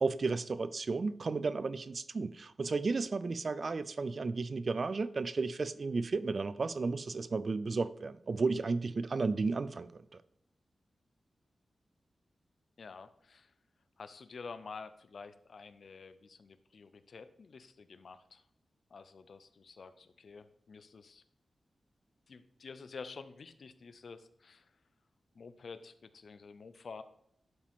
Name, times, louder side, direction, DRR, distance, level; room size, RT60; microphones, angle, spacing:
voice 1, 0.0-10.0, right 4 dB, 45° right, 0.3 m, -33 dB
voice 2, 12.8-13.5 14.0-18.4 18.9-21.2 22.3-24.7 25.3-27.0, left 4 dB, 55° left, 0.5 m, -49 dB
11.0 x 5.0 x 3.6 m
wide cardioid pair, 165°, 0 cm